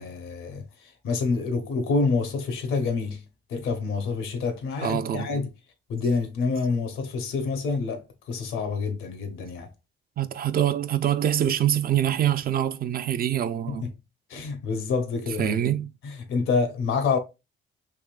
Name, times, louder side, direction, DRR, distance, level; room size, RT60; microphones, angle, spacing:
voice 1, 0.0-3.2 3.5-5.5 5.9-8.0 8.3-9.7 13.7-13.9 14.3-15.6 16.0-17.2, left 4 dB, 90° left, 0.9 m, -27 dB
voice 2, 4.8-5.4 10.2-13.9 15.4-15.9, right 10 dB, 50° right, 0.4 m, -25 dB
3.5 x 3.0 x 2.3 m
cardioid pair, 90°, 20 cm